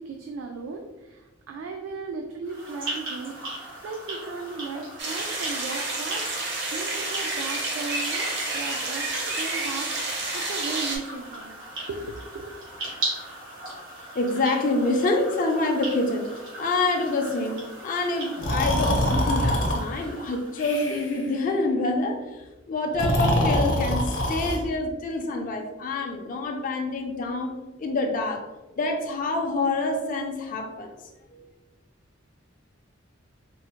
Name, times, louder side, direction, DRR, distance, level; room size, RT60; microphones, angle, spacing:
voice 1, 0.0-12.7, right 4 dB, 75° right, 3 dB, 0.3 m, -37 dB
sound 1, 2.4-20.9, right 1 dB, 90° right, 1.4 m, -38 dB
sound 2, 5.0-11.0, right 2 dB, 60° right, 0.7 m, -29 dB
voice 2, 14.1-16.3 16.6-22.4 22.7-28.4 28.8-30.9 31.3-31.4, left 2 dB, 45° left, 2 dB, 0.4 m, -26 dB
Breathing, 18.4-19.8 20.6-21.2 22.9-24.6, equal, 70° left, 0.7 m, -24 dB
3.6 x 2.0 x 2.9 m, 1.1 s
head